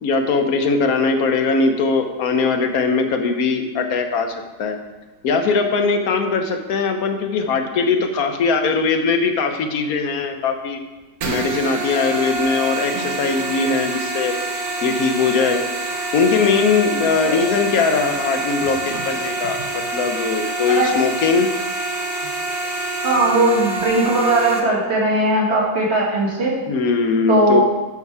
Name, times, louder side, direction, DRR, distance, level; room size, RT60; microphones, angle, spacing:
voice 1, 0.0-4.3 4.6-4.8 5.2-10.8 11.2-14.3 14.8-15.6 16.1-21.5 26.7-27.6, left 4 dB, 80° left, 6 dB, 1.3 m, -20 dB
sound 1, 11.2-24.6, right 2 dB, 75° right, 1.5 m, -26 dB
voice 2, 23.0-26.5 27.3-27.6, right 2 dB, 45° right, -4 dB, 2.2 m, -18 dB
8.2 x 7.2 x 4.7 m, 1.2 s
omnidirectional pair, 1.5 m